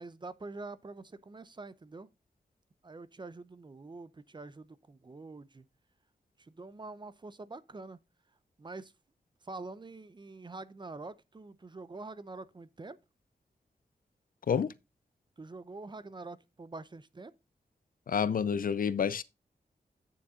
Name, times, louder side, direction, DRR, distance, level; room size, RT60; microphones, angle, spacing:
voice 1, 0.0-2.1 2.8-5.7 6.4-8.0 8.6-8.9 9.4-13.0 15.4-17.3, right 3 dB, 30° right, 0.7 m, -45 dB
voice 2, 18.1-19.2, left 7 dB, 65° left, 0.6 m, -29 dB
9.2 x 7.0 x 3.7 m
wide cardioid pair, 120°, 16 cm